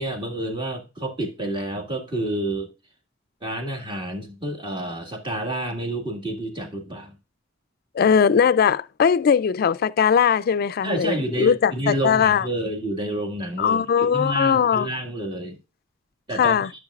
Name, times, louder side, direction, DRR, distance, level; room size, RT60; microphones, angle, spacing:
voice 1, 0.0-2.7 3.4-7.1 10.8-15.6 16.3-16.6, right 1 dB, 25° right, 1.8 m, -29 dB
voice 2, 7.9-12.5 13.6-14.9 16.4-16.7, left 7 dB, 50° left, 0.3 m, -20 dB
12.0 x 6.3 x 2.4 m
head